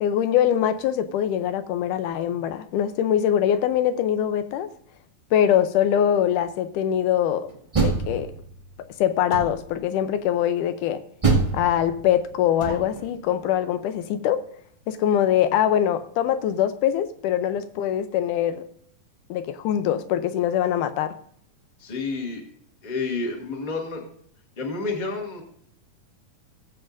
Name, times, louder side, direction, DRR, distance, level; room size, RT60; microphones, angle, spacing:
voice 1, 0.0-4.7 5.3-7.5 7.8-8.3 9.0-11.0 11.5-14.4 14.9-18.7 19.3-21.1, left 10 dB, 80° left, 2.1 m, -23 dB
Door, 7.5-8.7 9.3-9.9 11.2-13.1, right 4 dB, 25° right, 0.6 m, -26 dB
voice 2, 21.8-22.4 22.8-24.0 24.6-25.4, left 3 dB, 20° left, 1.3 m, -29 dB
18.5 x 7.8 x 2.6 m
omnidirectional pair, 3.9 m